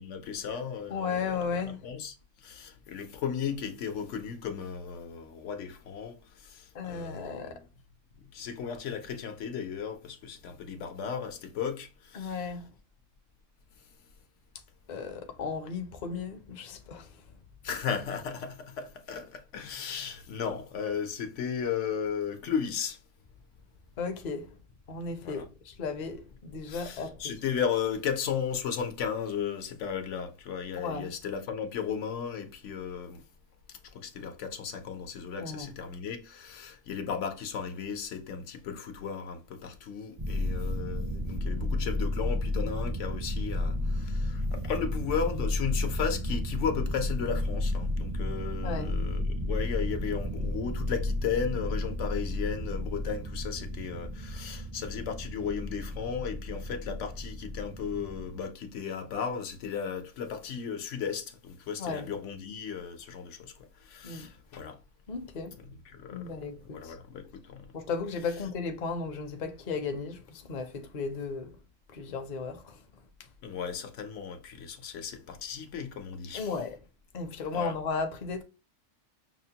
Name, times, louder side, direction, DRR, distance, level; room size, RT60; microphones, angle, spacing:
voice 1, 0.0-2.2 2.4-7.6 8.1-12.5 17.6-23.0 25.2-25.5 26.7-33.2 33.9-63.5 63.8-64.8 65.6-66.4 66.6-67.7 73.4-76.5 77.5-77.7, left 7 dB, 80° left, 1.0 m, -35 dB
voice 2, 0.9-1.8 6.7-7.6 12.1-12.7 14.9-17.1 24.0-24.5 24.9-27.4 30.8-31.1 35.4-35.8 48.6-48.9 61.8-62.1 64.0-64.3 65.1-65.6 66.1-66.9 67.7-71.6 71.9-72.8 76.3-76.8 77.1-78.4, left 5 dB, 45° left, 0.6 m, -35 dB
sound 1, 40.2-58.4, left 1 dB, 40° right, 0.4 m, -32 dB
5.8 x 2.1 x 2.8 m
omnidirectional pair, 1.2 m